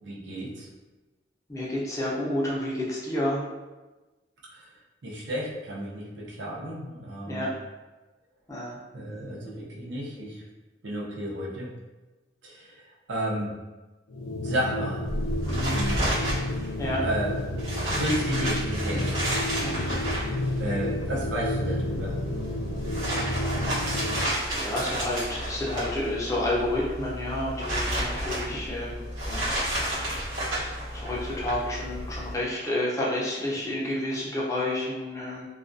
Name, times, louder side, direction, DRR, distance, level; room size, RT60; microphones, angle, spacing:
voice 1, 0.0-0.7 4.5-4.7 5.0-7.5 8.9-10.4 10.8-11.7 12.4-13.5 14.4-15.0 15.7-16.1 17.0-17.4 17.9-19.2 20.6-22.2, right 1 dB, 75° right, -4 dB, 0.6 m, -32 dB
voice 2, 1.5-3.4 7.3-7.5 8.5-8.8 15.5-15.7 16.8-17.0 19.6-19.9 24.1-29.5 30.6-35.5, left 1 dB, 15° left, -5 dB, 0.5 m, -30 dB
sound 1, 14.1-24.3, left 1 dB, 85° left, 0.4 m, -31 dB
sound 2, 15.1-32.3, right 1 dB, 90° right, 1.0 m, -32 dB
2.3 x 2.2 x 2.5 m, 1.2 s
head